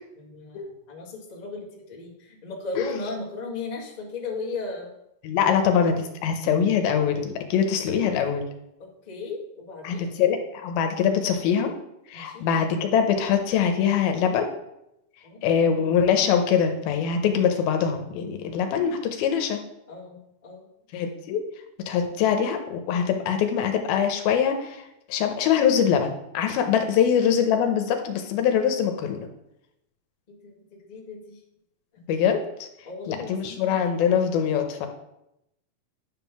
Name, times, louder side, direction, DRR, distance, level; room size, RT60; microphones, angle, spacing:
voice 1, 0.2-4.9 5.4-5.6 7.9-8.0 8.8-10.1 12.1-12.5 15.2-15.4 19.9-20.6 26.6-26.8 30.3-31.4 32.8-33.6, left 3 dB, 45° left, -5 dB, 0.5 m, -36 dB
voice 2, 5.2-8.4 9.8-11.7 12.1-14.5 15.4-19.6 20.9-21.4 21.9-29.3 32.1-32.7 33.1-34.9, left 7 dB, 80° left, 5 dB, 2.6 m, -23 dB
9.9 x 3.7 x 5.9 m, 0.83 s
omnidirectional pair, 4.4 m